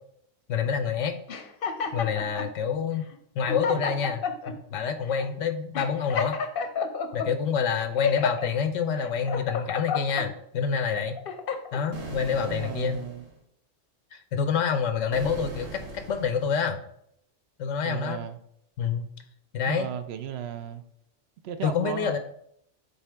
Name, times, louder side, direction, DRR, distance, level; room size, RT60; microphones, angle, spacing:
voice 1, 0.5-1.2 1.9-3.0 3.4-6.4 7.1-11.2 11.7-13.0 14.1-16.8 17.6-18.2 18.8-19.1 19.5-19.9 21.6-22.2, left 6 dB, 85° left, 9 dB, 0.9 m, -27 dB
sound 1, 1.3-2.5 3.1-3.2 3.5-4.5 5.1-5.3 5.7-7.3 7.8-8.5 9.0-10.3 10.8-11.8, left 6 dB, 55° left, 0.8 m, -30 dB
voice 2, 3.4-4.0 12.2-13.3 17.8-18.4 19.7-20.8 21.4-22.2, right 9 dB, 65° right, 10 dB, 0.7 m, -36 dB
sound 2, 11.9-13.3 15.1-16.6, right 2 dB, 85° right, 1.6 m, -39 dB
8.1 x 4.1 x 3.3 m, 0.72 s
omnidirectional pair, 1.3 m